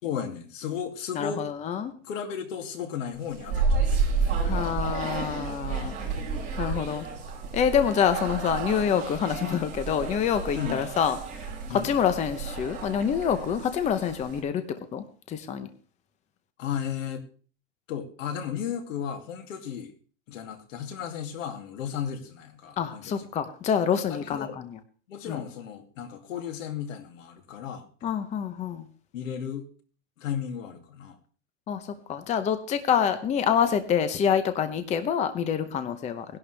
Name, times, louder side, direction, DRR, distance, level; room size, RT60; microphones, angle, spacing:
voice 1, 0.0-1.5 2.0-4.3 6.0-6.2 7.7-7.9 10.5-10.9 11.7-12.0 16.6-17.2 17.9-19.9 20.3-23.3 24.1-24.7 25.1-27.9 29.1-29.7 30.2-31.2, left 8 dB, 80° left, 6 dB, 2.8 m, -35 dB
voice 2, 1.2-1.9 4.4-5.9 6.6-7.1 7.5-11.2 11.7-14.6 14.9-15.7 22.8-24.7 25.3-25.4 28.0-28.8 31.7-31.8 32.1-36.3, left 8 dB, 20° left, 10 dB, 0.8 m, -26 dB
sound 1, 3.2-14.4, right 4 dB, 20° right, 5.6 m, -31 dB
18.5 x 11.0 x 3.4 m, 0.40 s
supercardioid pair, 150°, 38 cm